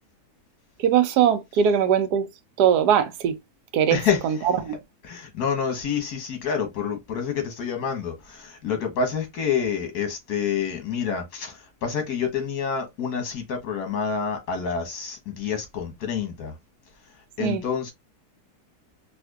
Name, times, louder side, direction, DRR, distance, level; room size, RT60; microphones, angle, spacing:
voice 1, 0.8-2.3 2.6-3.4 3.7-4.8 17.4-17.6, right 9 dB, 85° right, 1.2 m, -21 dB
voice 2, 3.9-4.3 5.0-16.6 17.4-17.9, left 6 dB, 80° left, 1.6 m, -28 dB
4.3 x 2.5 x 2.3 m
omnidirectional pair, 1.7 m